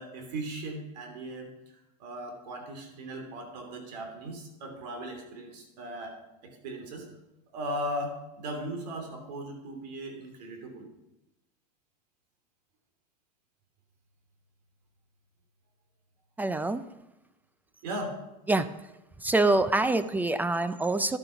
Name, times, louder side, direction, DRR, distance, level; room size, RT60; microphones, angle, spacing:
voice 1, 0.0-1.5 2.0-6.1 6.4-7.1 7.5-10.9 17.8-18.2, right 1 dB, 85° right, 3 dB, 3.2 m, -37 dB
voice 2, 16.4-16.8 18.5-18.7 19.2-21.2, right 2 dB, 10° right, 12 dB, 0.4 m, -25 dB
12.0 x 7.8 x 5.8 m, 0.94 s
supercardioid pair, 135°, 21 cm